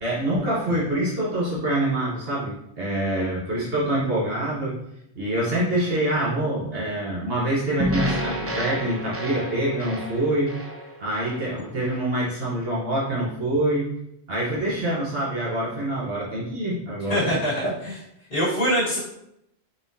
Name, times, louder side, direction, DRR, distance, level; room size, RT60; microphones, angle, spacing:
voice 1, 0.0-4.7 5.2-10.5 11.0-13.9 14.3-17.7, right 1 dB, 70° right, -6 dB, 1.2 m, -25 dB
sound 1, 7.8-12.1, equal, 20° right, 0.4 m, -30 dB
voice 2, 17.0-18.0 18.3-19.0, equal, 70° left, -8 dB, 1.5 m, -24 dB
4.0 x 3.6 x 2.6 m, 0.79 s
omnidirectional pair, 1.0 m